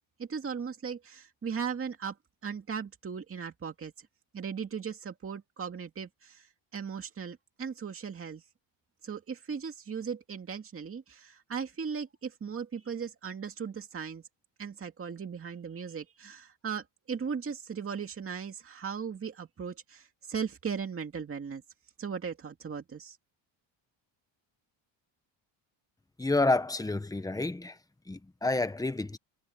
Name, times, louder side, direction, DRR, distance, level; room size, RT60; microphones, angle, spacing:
voice 1, 0.2-2.2 2.4-3.9 4.3-8.4 9.0-14.2 14.6-21.6 22.0-23.2, right 6 dB, 30° right, 2.3 m, -37 dB
voice 2, 26.2-27.7 28.1-29.2, left 2 dB, 10° left, 1.2 m, -29 dB
cardioid pair, 135°, 46 cm